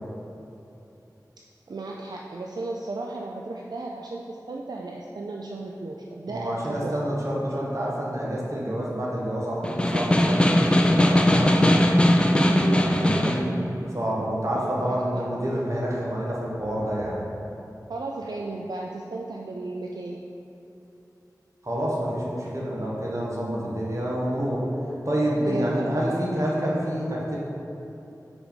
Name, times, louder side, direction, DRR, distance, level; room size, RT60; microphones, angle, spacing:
voice 1, 1.7-7.0 12.4-13.0 14.5-15.3 17.9-20.3 25.4-26.4, right 2 dB, 75° right, -1 dB, 0.4 m, -35 dB
voice 2, 6.3-11.6 12.6-13.5 13.9-17.2 21.6-24.6 25.0-27.4, equal, 45° right, -5 dB, 1.4 m, -28 dB
Snare drum, 9.6-13.5, left 1 dB, 15° left, 0.4 m, -19 dB
sound 1, 12.6-13.1 16.6-17.1, equal, 50° left, 1.3 m, -43 dB
5.0 x 4.9 x 5.2 m, 3.0 s
wide cardioid pair, 55°, 7 cm